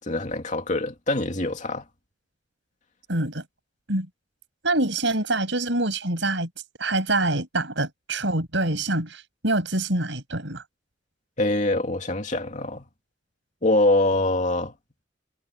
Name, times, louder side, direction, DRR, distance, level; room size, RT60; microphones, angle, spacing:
voice 1, 0.0-1.8 11.4-12.9 13.6-14.7, left 2 dB, 40° left, 2.6 m, -24 dB
voice 2, 3.1-3.4 3.9-4.1 4.6-6.5 6.8-10.6, right 2 dB, 65° right, 6.6 m, -25 dB
head